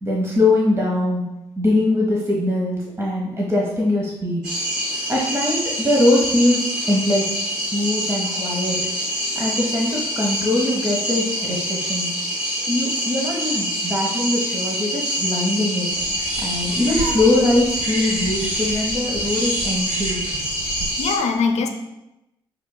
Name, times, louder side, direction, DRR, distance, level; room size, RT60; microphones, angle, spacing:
voice 1, 0.0-1.2 1.6-4.4 5.1-7.3 7.7-8.8 9.3-12.1 12.7-15.9 16.4-20.2, left 1 dB, 20° right, -3 dB, 1.0 m, -21 dB
sound 1, 4.4-21.2, equal, 75° right, 1.2 m, -26 dB
sound 2, 15.9-20.9, right 2 dB, 55° right, 1.1 m, -32 dB
voice 2, 20.6-21.7, left 5 dB, 60° left, 5 dB, 0.6 m, -23 dB
6.5 x 2.7 x 2.2 m, 0.90 s
hypercardioid pair, 45°, 13 cm